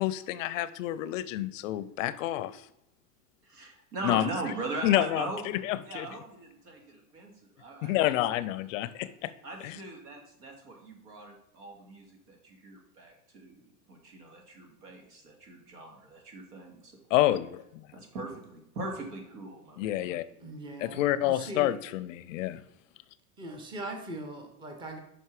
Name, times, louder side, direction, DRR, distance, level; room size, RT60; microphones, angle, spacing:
voice 1, 0.0-2.6 4.0-4.3 4.8-5.3 5.6-6.1 7.8-9.3 9.6-9.8 17.1-17.8 19.8-20.3 20.8-22.6, left 14 dB, 55° left, 15 dB, 0.5 m, -28 dB
voice 2, 3.4-5.4 5.8-7.3 7.6-8.6 9.0-9.1 9.4-16.9 17.9-20.0, right 2 dB, 80° right, 1 dB, 2.4 m, -40 dB
voice 3, 20.4-21.7 23.4-25.0, right 1 dB, 10° right, 4 dB, 0.7 m, -40 dB
5.5 x 5.5 x 4.7 m, 0.83 s
supercardioid pair, 145°, 46 cm